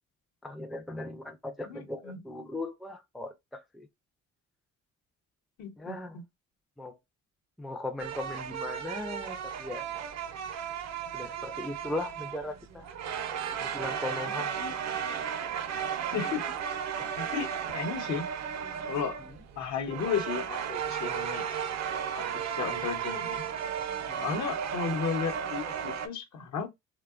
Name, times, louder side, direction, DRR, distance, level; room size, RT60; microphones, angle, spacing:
voice 1, 0.4-3.9 5.8-6.2 6.8-7.0 7.6-9.8 11.1-12.9 13.6-14.5 17.0-17.2 24.1-24.4, left 2 dB, ahead, 0.3 m, -38 dB
voice 2, 1.6-2.2 5.6-6.2 14.3-14.7 16.1-16.5 17.2-17.5 17.7-18.3 18.8-19.2 19.6-21.5 22.1-23.4 24.2-26.7, left 6 dB, 65° left, 0.8 m, -34 dB
sound 1, 8.0-26.1, right 8 dB, 60° right, 0.5 m, -35 dB
2.7 x 2.2 x 2.4 m
cardioid pair, 90°, 30 cm